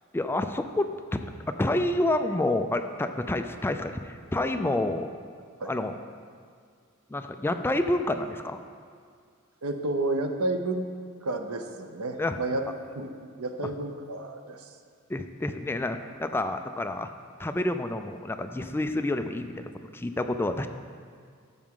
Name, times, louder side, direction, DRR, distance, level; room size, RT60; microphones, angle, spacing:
voice 1, 0.1-0.9 1.5-5.1 5.7-6.0 7.1-8.6 12.2-12.4 13.6-13.7 15.1-17.1 17.4-20.7, left 1 dB, 10° left, 7 dB, 0.3 m, -28 dB
voice 2, 9.6-10.9 11.2-12.6 12.9-13.1 13.4-14.7, right 2 dB, 90° right, 6 dB, 0.7 m, -30 dB
12.0 x 7.1 x 3.7 m, 2.2 s
head